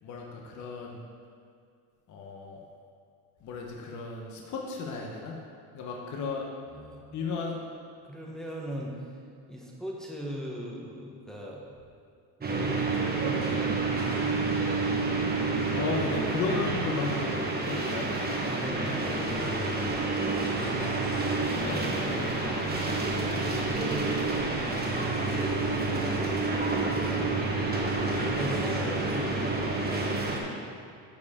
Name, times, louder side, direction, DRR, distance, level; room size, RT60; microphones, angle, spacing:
voice 1, 0.0-1.0 2.1-2.6 3.4-5.4 5.7-6.4 7.1-7.5 15.7-18.1 20.6-20.8 21.3-21.8, left 4 dB, 45° left, 0 dB, 1.0 m, -34 dB
voice 2, 6.7-7.0 8.0-9.2 9.5-11.6 12.4-14.8 18.4-20.2 21.4-23.0 23.4-24.6 27.9-29.9, equal, ahead, -3 dB, 1.0 m, -39 dB
sound 1, 12.4-30.4, right 3 dB, 20° right, 1.1 m, -29 dB
sound 2, 14.9-30.1, left 1 dB, 25° left, 2.1 m, -49 dB
11.5 x 4.8 x 3.6 m, 2.4 s
cardioid pair, 125°, 42 cm